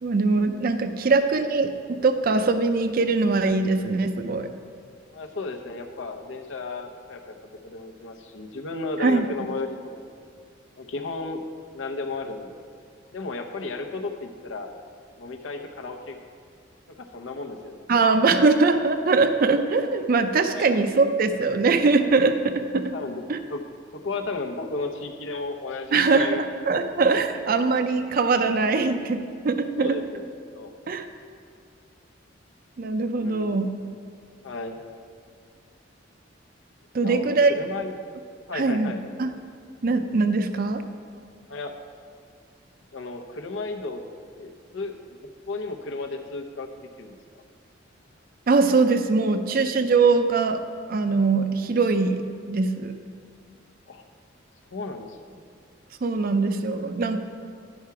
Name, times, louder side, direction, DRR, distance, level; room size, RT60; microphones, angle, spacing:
voice 1, 0.0-4.5 9.0-9.3 17.9-22.9 23.3-23.4 25.9-29.2 29.4-30.0 30.9-31.1 32.8-33.7 36.9-37.5 38.5-38.9 39.2-39.3 39.8-40.8 48.5-50.6 50.9-52.2 52.5-52.9 56.0-57.2, right 3 dB, 50° right, 9 dB, 0.4 m, -22 dB
voice 2, 5.1-10.1 10.8-11.4 11.7-12.6 13.1-14.7 15.2-16.2 16.9-17.8 20.5-20.7 22.9-23.2 23.5-23.6 23.9-26.4 27.1-27.2 29.8-30.2 30.5-30.7 33.2-33.6 34.4-34.8 37.0-37.9 38.5-39.0 41.5-41.7 42.9-44.0 44.4-45.0 45.5-47.2 53.9-54.0 54.7-55.4, left 3 dB, 85° left, 5 dB, 0.8 m, -34 dB
10.5 x 5.7 x 4.7 m, 2.2 s
head